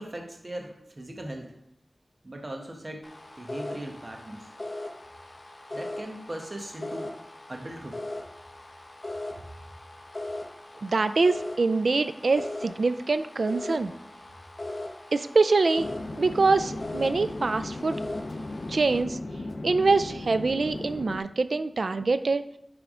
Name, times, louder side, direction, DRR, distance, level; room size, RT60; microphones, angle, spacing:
voice 1, 0.0-1.5 2.2-3.1 3.4-4.5 5.7-7.2 7.5-8.0, right 1 dB, 45° right, 2 dB, 1.1 m, -39 dB
sound 1, 3.0-19.0, left 2 dB, 40° left, 0.9 m, -39 dB
voice 2, 10.8-13.9 15.1-15.9 16.2-18.0 18.7-19.2 19.6-22.4, right 3 dB, 80° right, 11 dB, 0.4 m, -24 dB
Chatter / Fixed-wing aircraft airplane, 15.8-21.2, left 2 dB, 65° left, 0.6 m, -36 dB
10.0 x 3.4 x 3.7 m, 0.76 s
wide cardioid pair, 60°, 0 cm